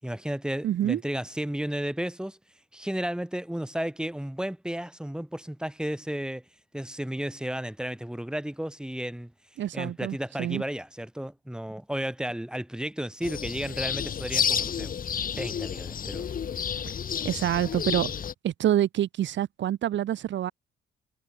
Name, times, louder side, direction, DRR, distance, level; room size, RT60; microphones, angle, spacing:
voice 1, 0.0-2.4 2.7-6.4 6.7-9.3 9.7-15.0 15.4-16.3, right 1 dB, 5° right, 6.6 m, -33 dB
voice 2, 0.6-1.0 9.6-10.6 17.2-18.1 18.4-20.5, right 11 dB, 70° right, 1.5 m, -27 dB
sound 1, 13.2-18.3, left 8 dB, 45° left, 1.1 m, -30 dB
cardioid pair, 90°, 20 cm